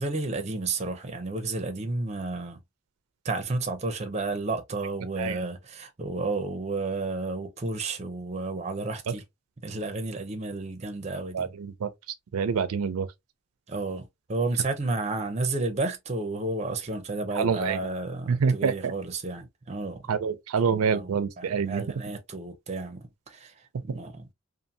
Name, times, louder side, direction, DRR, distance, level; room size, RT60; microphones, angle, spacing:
voice 1, 0.0-2.6 3.2-9.2 9.6-11.5 13.7-20.0 20.7-24.2, right 3 dB, 30° right, 0.5 m, -32 dB
voice 2, 11.3-11.9 12.3-13.1 17.3-17.8 18.3-18.9 20.1-21.8, right 6 dB, 85° right, 0.4 m, -26 dB
2.6 x 2.5 x 2.6 m
head